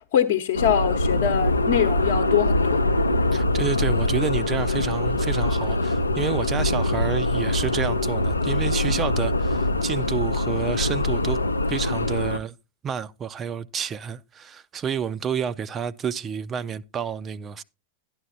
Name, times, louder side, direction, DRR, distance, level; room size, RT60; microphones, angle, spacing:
voice 1, 0.1-2.8, left 9 dB, 50° left, 0.9 m, -23 dB
sound 1, 0.5-12.4, left 2 dB, 80° left, 0.5 m, -23 dB
voice 2, 3.3-11.4 11.7-12.5 12.8-17.6, right 7 dB, 25° right, 0.4 m, -29 dB
12.5 x 10.5 x 2.6 m
figure-of-eight pair, 90°, 0 cm